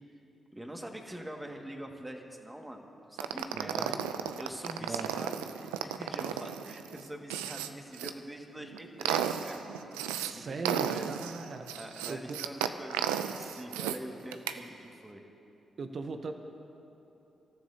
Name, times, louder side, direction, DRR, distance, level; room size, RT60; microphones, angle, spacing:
voice 1, 0.5-4.0 4.4-9.6 10.2-11.1 11.7-15.2, right 1 dB, 15° right, 2 dB, 1.9 m, -44 dB
sound 1, 3.2-8.1 8.6-10.3 10.6-14.0 14.3-14.6, right 10 dB, 90° right, 0.4 m, -34 dB
voice 2, 3.5-4.0 4.9-5.2 10.1-11.6 12.1-12.4 15.8-16.3, right 3 dB, 55° right, 6 dB, 0.9 m, -38 dB
26.0 x 14.0 x 2.8 m, 3.0 s
hypercardioid pair, 40°, 0 cm